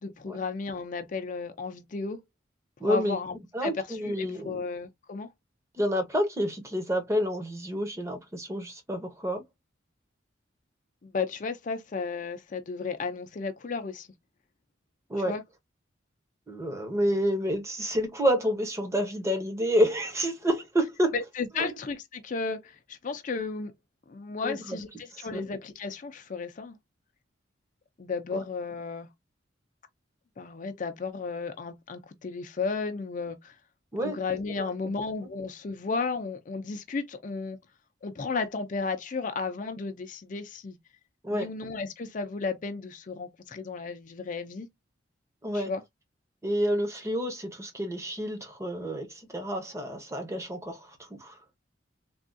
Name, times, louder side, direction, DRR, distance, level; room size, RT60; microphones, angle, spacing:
voice 1, 0.0-2.2 2.8-5.3 11.0-14.1 15.3-15.4 21.1-23.7 24.1-26.8 28.0-29.1 30.4-33.6 34.0-37.6 38.0-40.8 41.3-44.7 45.5-45.8, left 4 dB, 45° left, 0.4 m, -34 dB
voice 2, 2.8-3.2 3.5-4.6 5.8-9.4 15.1-15.3 16.5-21.1 21.6-21.7 24.4-24.8 25.1-25.4 28.3-28.4 33.9-34.2 34.6-34.7 41.2-41.5 45.4-45.7 46.4-51.4, equal, 15° right, 0.8 m, -29 dB
3.4 x 2.3 x 2.5 m
head